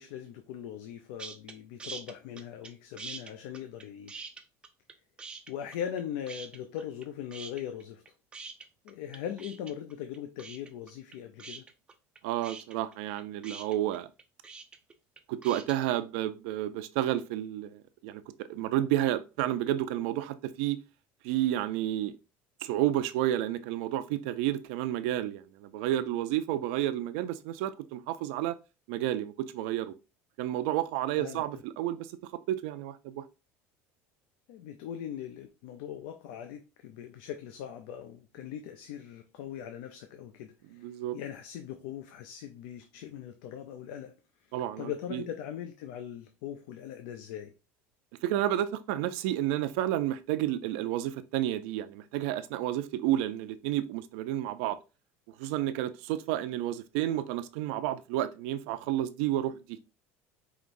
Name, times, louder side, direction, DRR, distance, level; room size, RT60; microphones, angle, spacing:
voice 1, 0.0-4.2 5.5-8.0 8.8-11.7 31.1-31.6 34.5-40.8 41.1-44.1 44.4-47.5, left 9 dB, 75° left, 0.5 m, -40 dB
sound 1, 1.2-1.5 1.8-2.7 3.0-4.9 5.2-6.0 6.3-7.0 7.3-15.8, right 4 dB, 15° right, 0.4 m, -44 dB
voice 2, 12.2-14.1 15.3-18.2 18.5-20.8 21.2-22.1 22.6-28.6 28.9-29.9 30.4-32.1 32.5-33.2 40.8-41.2 44.5-45.2 48.2-54.8 55.4-59.8, right 13 dB, 75° right, 0.5 m, -31 dB
5.0 x 3.0 x 2.6 m
cardioid pair, 170°, 6 cm